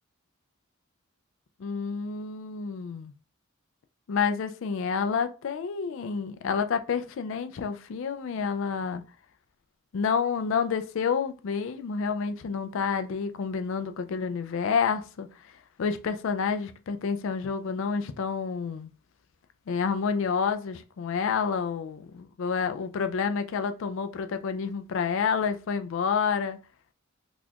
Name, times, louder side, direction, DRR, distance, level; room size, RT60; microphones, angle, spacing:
voice 1, 1.6-3.1 4.1-9.0 9.9-15.5 15.8-18.9 19.7-26.6, left 6 dB, 60° left, 0.3 m, -29 dB
4.0 x 2.8 x 2.3 m
head